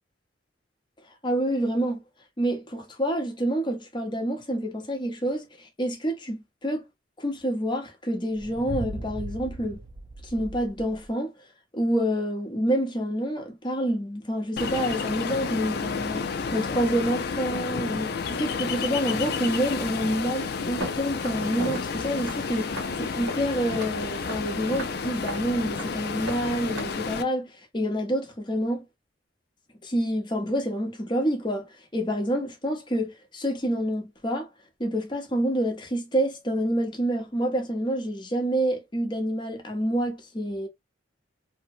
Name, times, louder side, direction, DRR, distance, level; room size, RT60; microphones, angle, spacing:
voice 1, 1.2-2.0 2.4-6.8 7.2-9.8 10.2-11.3 11.7-28.8 29.8-34.5 34.8-40.7, equal, 25° left, 0.7 m, -28 dB
sound 1, 8.3-11.1, right 2 dB, 30° right, 0.3 m, -38 dB
Ocean, 14.6-27.2, left 5 dB, 55° left, 0.4 m, -31 dB
Walk footsteps, 20.8-26.8, right 1 dB, 75° right, 1.5 m, -38 dB
2.7 x 2.1 x 2.5 m
head